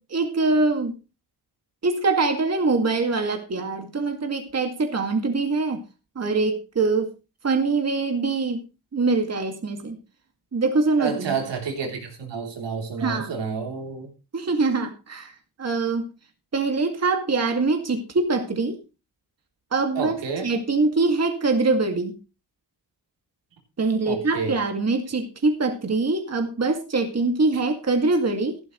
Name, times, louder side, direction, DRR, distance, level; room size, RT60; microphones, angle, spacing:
voice 1, 0.1-1.0 1.8-5.8 6.2-7.1 7.4-8.6 8.9-10.0 10.5-11.4 13.0-13.4 14.3-15.3 15.6-16.1 16.5-18.8 19.7-20.2 20.4-22.2 23.8-28.6, right 3 dB, 35° right, 4 dB, 2.2 m, -23 dB
voice 2, 11.0-14.1 20.0-20.5 24.1-24.6, right 5 dB, 90° right, 2 dB, 3.5 m, -29 dB
14.0 x 12.0 x 3.2 m, 0.30 s
wide cardioid pair, 110°, 42 cm